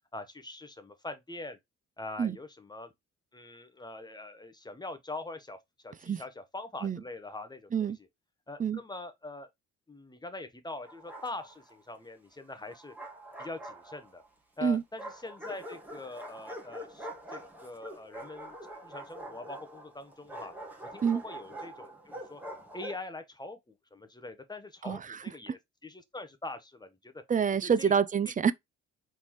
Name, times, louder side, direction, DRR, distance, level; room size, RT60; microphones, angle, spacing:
voice 1, 0.1-1.6 2.0-2.9 3.3-5.6 5.8-7.9 8.5-9.5 9.9-12.9 13.4-14.2 14.6-18.6 18.8-20.5 20.8-22.4 22.7-27.2 27.8-27.9, left 2 dB, 15° left, 0.9 m, -43 dB
Bark, 10.8-11.8 12.7-14.3 15.0-23.1, right 1 dB, 5° right, 1.6 m, -45 dB
voice 2, 24.8-25.2 27.3-28.5, right 7 dB, 30° right, 0.4 m, -27 dB
4.0 x 3.6 x 3.0 m
cardioid pair, 90°, 30 cm